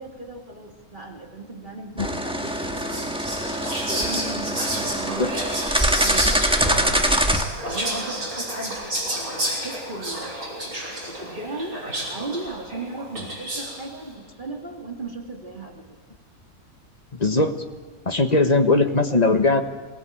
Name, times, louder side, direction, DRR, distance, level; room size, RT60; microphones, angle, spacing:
voice 1, 0.0-3.6 3.9-5.3 6.0-7.1 7.6-8.8 9.1-10.8 11.0-11.8 12.1-15.8, right 2 dB, 35° right, 1 dB, 2.5 m, -36 dB
sound 1, 2.0-7.4, equal, 5° right, 1.5 m, -24 dB
Whispering, 2.5-13.9, right 1 dB, 75° right, 6.5 m, -30 dB
voice 2, 17.2-17.6 18.1-19.6, left 2 dB, 30° left, 7 dB, 1.3 m, -19 dB
22.0 x 19.0 x 8.8 m, 1.4 s
omnidirectional pair, 1.6 m